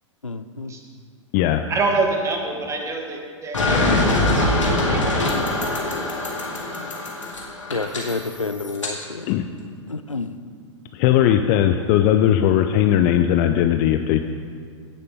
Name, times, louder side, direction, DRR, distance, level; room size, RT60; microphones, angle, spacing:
voice 1, 0.2-0.7 7.7-9.3 9.9-10.4, left 3 dB, 90° left, 10 dB, 0.5 m, -29 dB
voice 2, 1.7-6.0, right 3 dB, 20° right, 2 dB, 1.4 m, -27 dB
sound 1, 3.5-8.9, left 2 dB, 75° left, 1.9 m, -23 dB
voice 3, 10.9-14.2, left 11 dB, 35° left, 7 dB, 0.4 m, -18 dB
17.0 x 6.6 x 3.5 m, 2.1 s
figure-of-eight pair, 100°, 16 cm